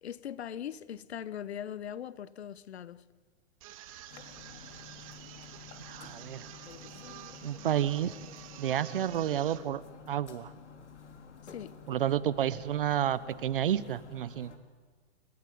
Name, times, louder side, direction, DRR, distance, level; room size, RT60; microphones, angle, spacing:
voice 1, 0.0-3.0 11.4-11.8, left 9 dB, 65° left, 1.1 m, -40 dB
sound 1, 3.6-9.6, right 12 dB, 30° right, 1.7 m, -49 dB
sound 2, 4.1-14.6, left 5 dB, 85° left, 3.7 m, -50 dB
voice 2, 5.9-6.4 7.4-8.1 8.6-9.8 10.1-10.5 11.9-14.5, right 10 dB, 50° right, 0.9 m, -30 dB
28.5 x 15.5 x 9.5 m
hypercardioid pair, 165°, 34 cm